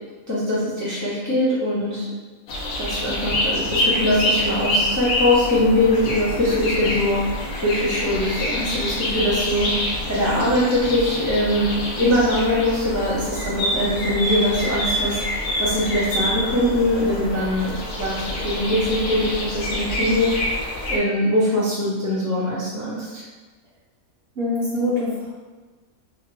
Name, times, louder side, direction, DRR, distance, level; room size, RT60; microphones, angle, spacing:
voice 1, 0.3-2.1 2.8-23.2, left 1 dB, 20° left, -10 dB, 0.5 m, -22 dB
sound 1, 2.5-21.0, left 1 dB, 60° left, 0.7 m, -26 dB
voice 2, 24.4-25.3, left 2 dB, 55° right, -7 dB, 0.8 m, -24 dB
2.8 x 2.4 x 3.1 m, 1.3 s
omnidirectional pair, 1.5 m